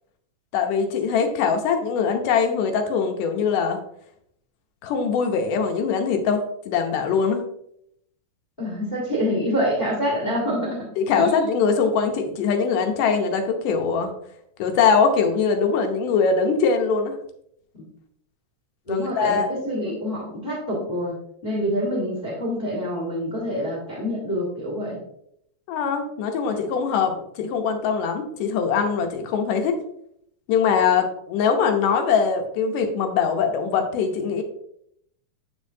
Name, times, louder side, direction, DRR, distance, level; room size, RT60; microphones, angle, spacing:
voice 1, 0.5-3.8 4.8-7.4 11.0-14.1 14.6-17.2 18.9-19.5 19.8-20.0 25.7-29.8 30.5-34.4, left 6 dB, 85° left, 5 dB, 2.4 m, -22 dB
voice 2, 8.6-11.4 17.7-17.8 18.9-19.4 19.6-21.2 21.4-25.0, equal, 25° left, -2 dB, 1.2 m, -26 dB
8.5 x 5.2 x 2.7 m, 0.72 s
omnidirectional pair, 3.7 m